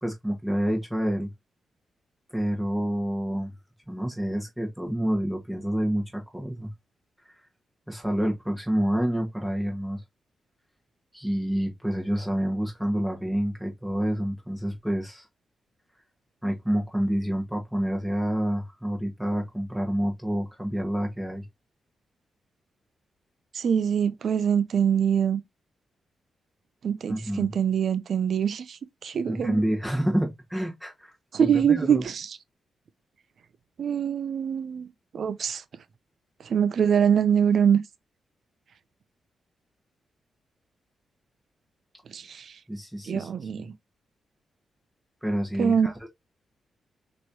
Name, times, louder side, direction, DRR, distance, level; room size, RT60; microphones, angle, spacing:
voice 1, 0.0-1.3 2.3-3.5 3.9-6.7 7.9-10.0 11.1-15.3 16.4-21.4 27.1-27.5 29.3-32.0 42.7-43.3 43.6-43.7 45.2-46.1, equal, 5° right, 1.6 m, -28 dB
voice 2, 23.5-25.4 26.8-29.6 31.3-32.4 33.8-34.9 35.1-35.6 36.4-37.8 42.1-42.6 43.0-43.7 45.6-45.9, right 8 dB, 65° right, 0.5 m, -24 dB
6.1 x 3.1 x 2.7 m
cardioid pair, 70°, 0 cm